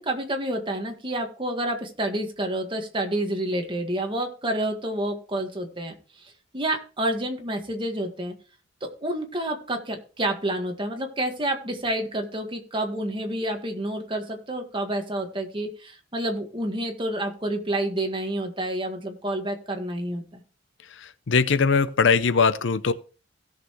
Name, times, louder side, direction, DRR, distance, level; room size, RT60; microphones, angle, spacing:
voice 1, 0.0-5.9 6.2-8.3 8.8-20.4, right 1 dB, 25° right, 1.7 m, -29 dB
voice 2, 21.0-22.9, left 5 dB, 65° left, 0.6 m, -21 dB
17.0 x 6.7 x 3.1 m
head